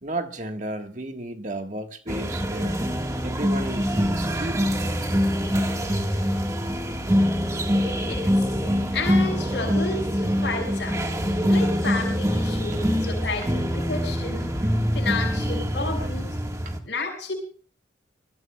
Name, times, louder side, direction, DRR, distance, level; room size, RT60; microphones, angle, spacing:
voice 1, 0.0-2.8 3.2-4.8 16.6-16.7, right 1 dB, 40° right, 1.5 m, -33 dB
sound 1, 2.1-16.8, equal, 15° right, 1.5 m, -24 dB
voice 2, 7.8-8.4 8.9-11.0 11.5-14.5 14.9-16.4 16.9-17.3, left 3 dB, 70° left, 5.8 m, -31 dB
24.0 x 20.5 x 2.3 m
head